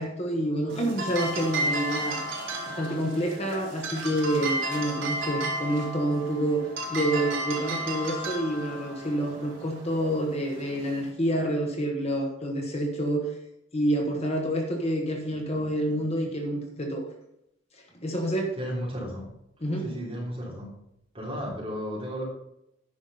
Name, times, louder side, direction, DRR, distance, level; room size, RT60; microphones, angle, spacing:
voice 1, 0.0-2.2 2.7-13.3 13.7-17.1 17.9-18.5 19.6-19.9, right 1 dB, 30° left, 1 dB, 1.5 m, -28 dB
sound 1, 0.7-11.1, right 1 dB, 75° right, 2.8 m, -33 dB
voice 2, 18.6-19.2 19.8-20.7 21.1-22.2, equal, 30° right, -4 dB, 3.6 m, -33 dB
9.9 x 5.8 x 5.5 m, 0.81 s
head